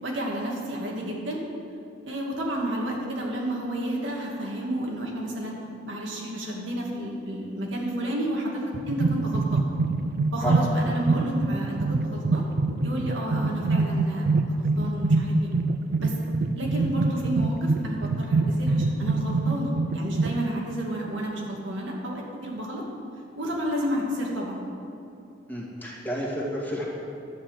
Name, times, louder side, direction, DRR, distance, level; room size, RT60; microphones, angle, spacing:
voice 1, 0.0-1.4 2.1-5.6 5.8-9.7 10.3-12.5 12.8-14.3 14.6-15.5 16.0-16.2 16.6-22.8 23.4-24.6, right 1 dB, 80° right, -2 dB, 2.1 m, -31 dB
sound 1, 8.7-20.4, right 3 dB, 55° right, 0.4 m, -25 dB
voice 2, 25.5-26.8, equal, 10° left, -5 dB, 2.1 m, -31 dB
11.5 x 5.6 x 8.2 m, 2.8 s
head